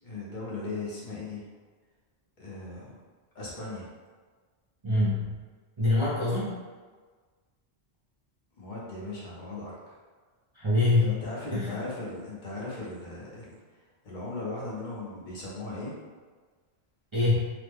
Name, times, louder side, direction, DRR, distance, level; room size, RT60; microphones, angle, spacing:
voice 1, 0.0-1.5 2.4-3.0 3.3-3.9 8.6-9.7 11.0-13.5 14.0-15.9, left 2 dB, 50° left, -6 dB, 0.8 m, -37 dB
voice 2, 4.8-5.2 5.8-6.5 10.6-11.1 11.5-11.7 17.1-17.4, left 2 dB, 40° right, -9 dB, 0.4 m, -24 dB
3.0 x 2.1 x 3.4 m, 1.4 s
omnidirectional pair, 1.1 m